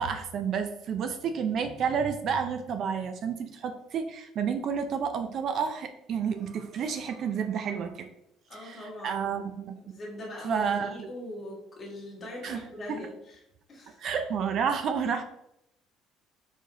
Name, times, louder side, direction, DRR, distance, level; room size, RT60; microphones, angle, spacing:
voice 1, 0.0-8.1 8.6-8.8 9.0-9.7 10.4-10.9 12.4-12.6 14.0-15.2, right 6 dB, 45° right, 7 dB, 0.4 m, -30 dB
voice 2, 8.5-9.4 9.8-13.4 13.7-14.0, left 1 dB, 30° left, -3 dB, 1.5 m, -41 dB
4.7 x 4.0 x 2.7 m, 0.81 s
cardioid pair, 145°, 0 cm